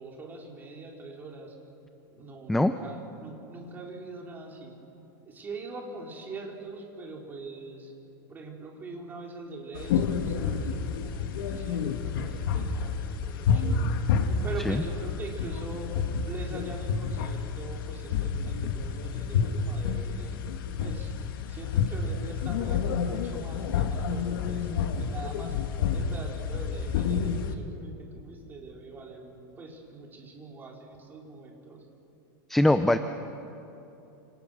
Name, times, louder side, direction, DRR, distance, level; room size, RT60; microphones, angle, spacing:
voice 1, 0.0-1.5 2.1-4.7 5.3-7.9 8.3-13.9 14.4-20.4 20.8-21.1 21.5-25.6 25.9-31.8, right 3 dB, 15° right, -1 dB, 4.1 m, -43 dB
sound 1, 9.7-27.5, left 6 dB, 75° left, 2.4 m, -29 dB
voice 2, 32.5-33.0, left 1 dB, ahead, 9 dB, 0.6 m, -22 dB
30.0 x 27.5 x 6.4 m, 3.0 s
supercardioid pair, 165°, 12 cm